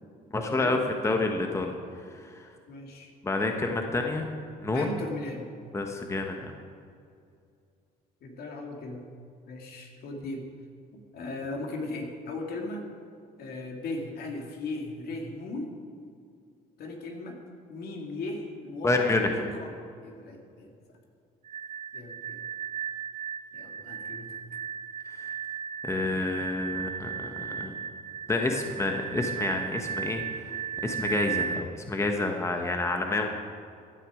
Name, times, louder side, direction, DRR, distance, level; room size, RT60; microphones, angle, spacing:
voice 1, 0.3-1.7 2.1-2.5 3.2-4.3 4.6-4.9 5.7-6.5 18.8-19.4 25.0-25.3 25.8-27.7 28.3-30.5 30.8-33.3, left 2 dB, 15° left, 3 dB, 1.2 m, -29 dB
voice 2, 2.7-3.1 4.7-5.5 8.2-9.0 9.5-10.4 10.9-12.8 13.4-15.7 16.8-17.4 17.7-19.7 20.0-20.7 21.9-22.4 23.5-24.4, left 2 dB, 65° left, 1 dB, 2.6 m, -37 dB
sound 1, 21.5-31.6, right 8 dB, 45° right, 0.6 m, -35 dB
16.0 x 11.0 x 5.0 m, 2.4 s
cardioid pair, 110°, 17 cm